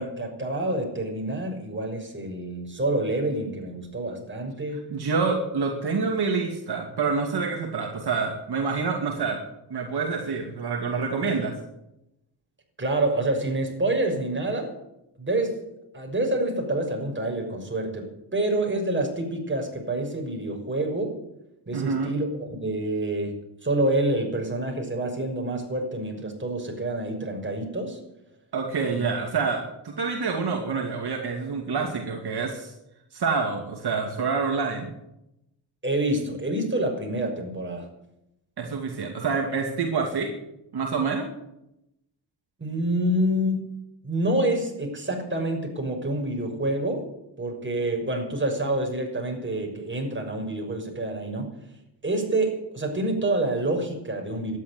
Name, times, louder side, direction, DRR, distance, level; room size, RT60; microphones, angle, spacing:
voice 1, 0.0-4.8 12.8-14.7 15.2-15.6 15.9-21.1 21.7-23.4 23.6-28.0 28.9-29.0 35.8-37.9 42.6-43.8 44.0-47.0 47.4-51.5 52.0-54.6, right 1 dB, 25° right, 2 dB, 6.3 m, -27 dB
voice 2, 4.9-9.4 9.7-11.5 21.7-22.1 28.5-32.7 33.1-34.9 38.6-40.3 40.7-41.3, right 4 dB, 65° right, 2 dB, 2.5 m, -27 dB
13.0 x 10.5 x 9.8 m, 0.86 s
cardioid pair, 55°, 42 cm